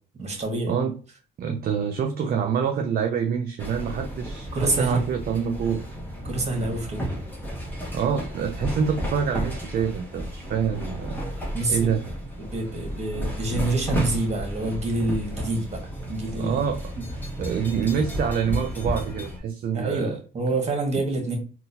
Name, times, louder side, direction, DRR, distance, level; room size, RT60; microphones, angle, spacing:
voice 1, 0.1-0.7 4.5-5.0 6.2-7.2 11.5-11.9 12.4-15.8 16.1-16.6 17.0-17.1 19.7-21.4, right 2 dB, 35° right, 2 dB, 1.3 m, -27 dB
voice 2, 1.4-5.8 7.9-11.2 11.7-12.0 16.4-16.8 17.4-20.2, right 7 dB, 50° right, 5 dB, 0.4 m, -26 dB
sound 1, 3.6-19.4, equal, 10° left, 1.2 m, -33 dB
3.8 x 2.3 x 2.7 m, 0.37 s
cardioid pair, 90°, 20 cm